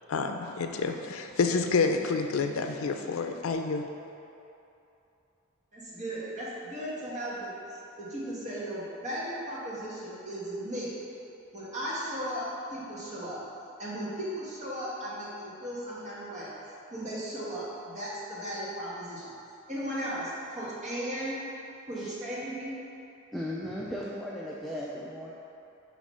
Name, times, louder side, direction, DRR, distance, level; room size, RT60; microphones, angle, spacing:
voice 1, 0.1-3.9, left 4 dB, 80° left, 5 dB, 0.4 m, -28 dB
voice 2, 5.7-10.9 11.5-13.4 13.8-16.5 16.9-19.3 19.7-21.4 21.9-22.7, right 1 dB, 35° right, -8 dB, 1.4 m, -36 dB
voice 3, 23.3-25.3, equal, ahead, -6 dB, 0.4 m, -36 dB
6.4 x 3.2 x 5.4 m, 2.8 s
head